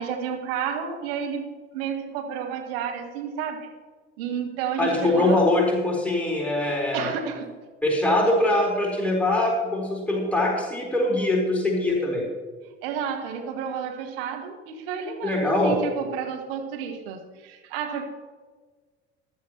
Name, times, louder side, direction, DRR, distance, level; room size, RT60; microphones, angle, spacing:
voice 1, 0.0-3.7 4.2-5.4 6.9-7.5 12.8-18.0, right 7 dB, 60° right, 3 dB, 1.7 m, -31 dB
voice 2, 4.8-7.1 7.8-12.2 15.2-15.8, left 2 dB, 5° left, -3 dB, 4.1 m, -23 dB
15.0 x 12.0 x 3.0 m, 1.4 s
figure-of-eight pair, 60°, 33 cm